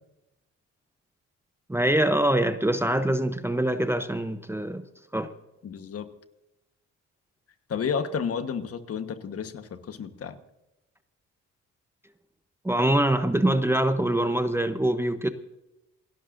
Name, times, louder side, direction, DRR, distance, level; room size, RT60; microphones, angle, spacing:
voice 1, 1.7-4.8 5.1-5.3 12.6-15.3, right 1 dB, 10° right, 10 dB, 0.7 m, -24 dB
voice 2, 5.6-6.1 7.7-10.3, left 6 dB, 50° left, 9 dB, 1.3 m, -31 dB
28.0 x 12.0 x 2.6 m, 0.92 s
cardioid pair, 90°, 30 cm